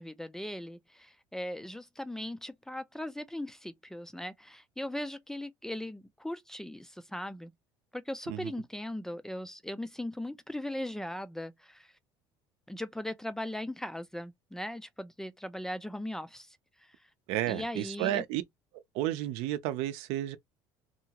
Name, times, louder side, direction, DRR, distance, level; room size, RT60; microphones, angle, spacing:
voice 1, 0.0-7.5 7.9-11.9 12.7-16.6 16.8-16.9 17.5-18.2, left 1 dB, 5° left, 0.3 m, -39 dB
voice 2, 17.3-18.4 18.7-20.4, right 13 dB, 80° right, 0.5 m, -32 dB
2.7 x 2.4 x 2.8 m
cardioid pair, 130°, 10 cm